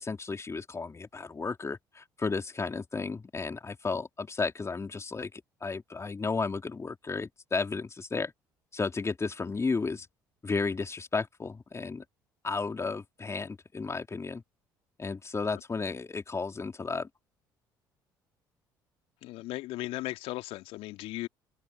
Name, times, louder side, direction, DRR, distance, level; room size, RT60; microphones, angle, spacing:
voice 1, 0.0-8.3 8.7-10.1 10.4-12.0 12.4-14.4 15.0-17.1, left 4 dB, 25° left, 3.9 m, -33 dB
voice 2, 19.2-21.3, left 17 dB, 60° left, 2.5 m, -36 dB
open air
figure-of-eight pair, 55°, 11 cm